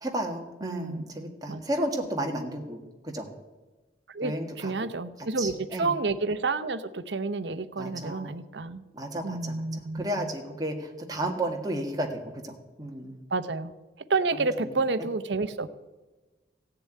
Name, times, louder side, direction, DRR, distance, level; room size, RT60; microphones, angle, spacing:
voice 1, 0.0-3.3 4.2-4.9 5.4-5.9 7.8-8.3 8.9-9.7 9.9-13.2, right 1 dB, 20° right, 2 dB, 1.7 m, -33 dB
voice 2, 0.6-1.0 1.5-1.6 4.1-8.8 9.2-10.3 13.3-13.7 14.1-15.7, right 3 dB, 70° right, 12 dB, 0.8 m, -30 dB
16.0 x 6.9 x 9.3 m, 1.2 s
head